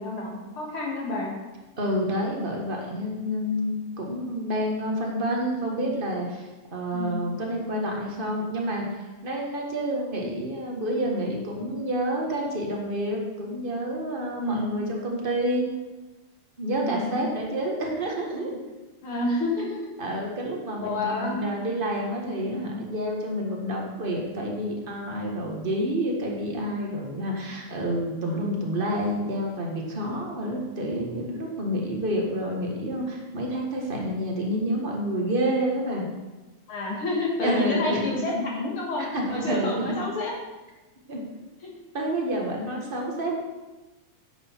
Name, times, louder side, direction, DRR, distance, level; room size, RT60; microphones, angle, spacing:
voice 1, 0.0-1.3 6.9-7.2 14.4-14.8 16.8-17.3 19.0-19.8 20.8-21.5 22.5-22.8 36.7-40.3 41.6-41.7 42.3-42.4, left 2 dB, 50° left, -2 dB, 2.2 m, -29 dB
voice 2, 1.8-15.7 16.6-18.6 20.0-36.1 37.4-38.6 39.0-39.9 41.1-41.2 41.9-43.3, equal, 50° right, -1 dB, 0.6 m, -29 dB
10.0 x 8.1 x 4.5 m, 1.1 s
omnidirectional pair, 3.5 m